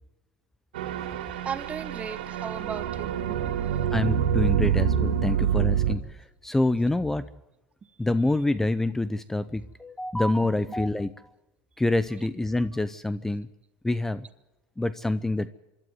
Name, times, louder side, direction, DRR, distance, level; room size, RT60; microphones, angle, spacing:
sound 1, 0.7-6.0, right 9 dB, 90° right, 2.6 m, -26 dB
voice 1, 1.4-3.9, right 7 dB, 25° right, 13 dB, 1.3 m, -37 dB
voice 2, 3.9-6.0 6.4-7.2 8.0-11.1 11.8-13.5 13.8-14.3 14.8-15.5, left 2 dB, 5° left, 15 dB, 0.7 m, -26 dB
25.5 x 12.0 x 9.5 m, 1.0 s
supercardioid pair, 115°, 5 cm